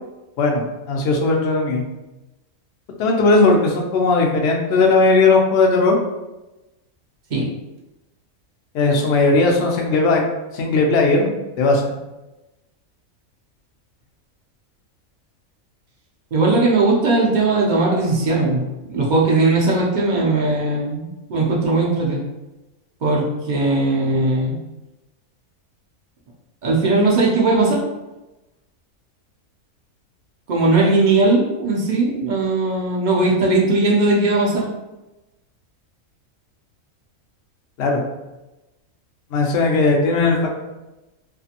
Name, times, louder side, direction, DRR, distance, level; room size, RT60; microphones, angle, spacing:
voice 1, 0.4-1.8 3.0-6.0 8.7-10.2 10.5-11.9 37.8-38.0 39.3-40.6, left 3 dB, 65° left, 1 dB, 0.7 m, -17 dB
voice 2, 16.3-22.2 23.0-24.6 26.6-27.8 30.5-34.7, right 2 dB, 65° right, -3 dB, 0.4 m, -18 dB
2.7 x 2.6 x 2.4 m, 1.0 s
omnidirectional pair, 1.5 m